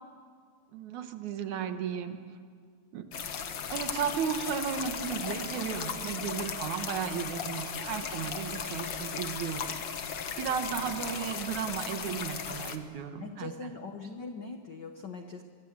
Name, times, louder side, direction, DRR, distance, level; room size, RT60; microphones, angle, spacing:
voice 1, 0.7-2.2 2.9-3.1 3.7-9.8 10.4-13.5, right 8 dB, 70° right, 7 dB, 2.7 m, -34 dB
sound 1, 3.1-12.8, left 7 dB, 55° left, 1.4 m, -36 dB
voice 2, 13.2-15.4, left 4 dB, 85° left, 6 dB, 0.9 m, -41 dB
24.5 x 24.0 x 7.4 m, 2.1 s
omnidirectional pair, 3.6 m